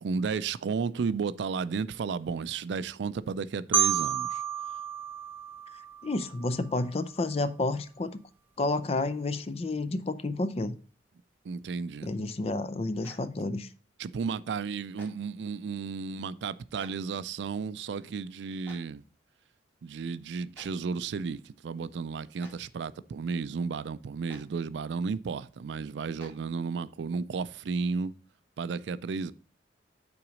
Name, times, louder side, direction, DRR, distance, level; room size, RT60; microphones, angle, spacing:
voice 1, 0.0-4.4 11.4-12.1 14.0-19.0 19.8-28.1 28.6-29.3, right 5 dB, 75° right, 0.4 m, -33 dB
Marimba xylophone, 3.7-6.6, right 8 dB, 10° right, 0.6 m, -30 dB
voice 2, 6.0-8.2 8.6-10.8 12.0-13.7, left 2 dB, 35° left, 0.4 m, -30 dB
Clapping, 13.0-13.1 14.9-15.1 16.8-16.9 18.6-18.8 20.5-20.6 22.4-22.5 24.3-24.4 26.2-26.3, equal, 10° left, 2.2 m, -48 dB
5.9 x 3.9 x 6.2 m
head